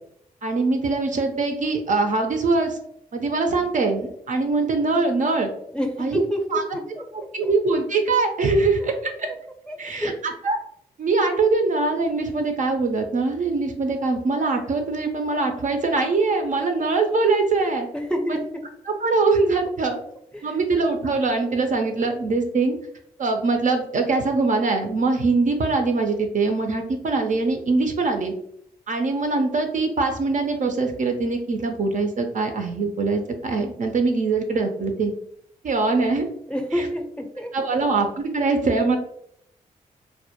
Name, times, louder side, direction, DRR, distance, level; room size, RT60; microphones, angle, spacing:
voice 1, 0.4-2.8 3.1-5.5 6.0-6.2 6.5-6.6 7.3-9.3 9.8-10.6 11.0-17.9 18.9-20.0 20.4-22.8 23.2-28.3 28.9-35.1 35.6-36.3 37.5-39.0, right 3 dB, 50° right, 4 dB, 0.4 m, -22 dB
voice 2, 5.7-7.0 7.4-7.5 9.0-9.1 9.7-10.2 17.9-18.4 20.3-20.6 36.5-37.5, equal, 5° left, 4 dB, 0.6 m, -28 dB
2.1 x 2.1 x 2.8 m, 0.71 s
hypercardioid pair, 40°, 17 cm